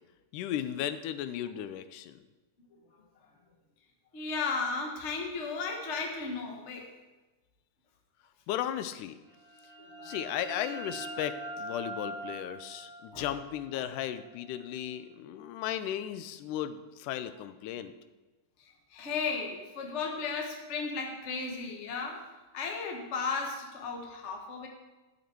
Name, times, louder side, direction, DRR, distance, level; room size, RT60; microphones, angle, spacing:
voice 1, 0.3-2.2 8.5-9.2 10.0-17.9, left 11 dB, 85° left, 12 dB, 2.1 m, -35 dB
voice 2, 4.1-6.9 10.0-10.1 13.1-13.3 18.9-22.2 22.5-24.7, left 4 dB, 60° left, 2 dB, 0.7 m, -35 dB
sound 1, 9.3-14.8, right 1 dB, 35° right, 0.5 m, -43 dB
12.0 x 6.7 x 4.5 m, 1.1 s
omnidirectional pair, 3.6 m